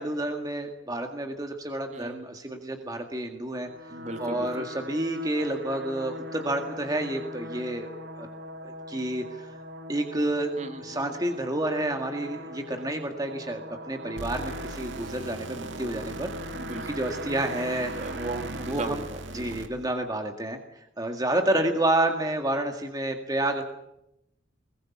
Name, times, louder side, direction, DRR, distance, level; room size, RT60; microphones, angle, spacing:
voice 1, 0.0-3.7 4.2-7.9 8.2-8.3 8.6-9.5 9.9-16.6 16.9-17.9 18.7-19.0 19.3-23.6, right 1 dB, 20° right, 4 dB, 2.0 m, -29 dB
voice 2, 1.9-2.3 3.9-4.7 10.6-11.0 16.5-16.9 18.0-19.6, right 2 dB, 40° right, 6 dB, 2.4 m, -37 dB
sound 1, 3.5-19.8, equal, 65° right, 2.5 m, -41 dB
sound 2, 14.2-19.9, right 2 dB, 85° right, 1.8 m, -40 dB
22.0 x 19.5 x 8.6 m, 0.85 s
head